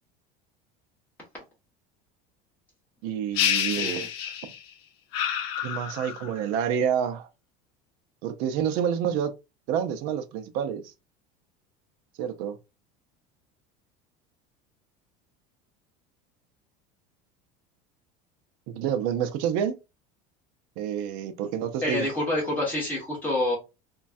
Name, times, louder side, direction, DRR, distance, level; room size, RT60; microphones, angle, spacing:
voice 1, 3.0-4.1 5.6-7.3 8.2-9.3 9.7-10.9 12.2-12.6 18.7-19.8 20.8-22.1, right 8 dB, 50° right, 0.4 m, -28 dB
sound 1, 3.3-4.7 5.1-6.4, left 9 dB, 55° left, 0.5 m, -28 dB
voice 2, 3.8-4.1 21.8-23.6, left 1 dB, 10° left, 1.3 m, -27 dB
3.1 x 2.2 x 2.5 m
cardioid pair, 175°, 19 cm